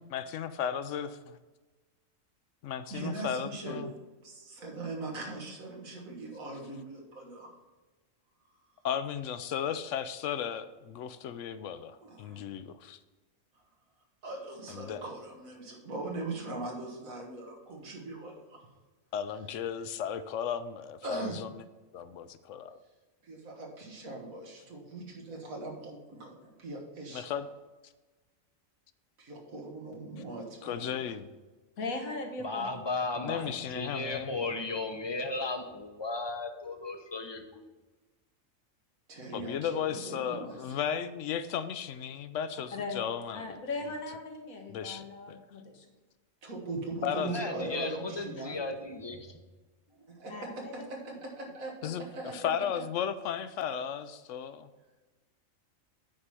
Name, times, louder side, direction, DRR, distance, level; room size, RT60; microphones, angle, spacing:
voice 1, 0.0-1.4 2.6-3.9 8.8-13.0 14.7-15.0 19.1-21.5 21.9-22.8 27.1-27.4 30.6-31.3 33.2-34.4 39.3-43.6 44.7-45.4 47.0-47.3 51.8-52.1 52.3-54.7, left 8 dB, 70° left, 12 dB, 0.9 m, -35 dB
voice 2, 2.9-3.8 4.2-7.5 12.0-12.4 14.2-18.7 21.0-21.4 23.2-27.2 29.2-31.1 39.1-40.8 46.4-48.7 49.9-52.4, right 2 dB, 85° right, 0 dB, 1.9 m, -40 dB
voice 3, 31.8-32.8 33.2-33.8 42.7-43.0 43.3-45.8 50.3-50.9, left 3 dB, 90° left, 3 dB, 1.7 m, -39 dB
voice 4, 32.4-37.6 47.3-49.4, left 3 dB, 25° left, 5 dB, 0.6 m, -35 dB
8.9 x 4.8 x 5.6 m, 1.2 s
omnidirectional pair, 1.4 m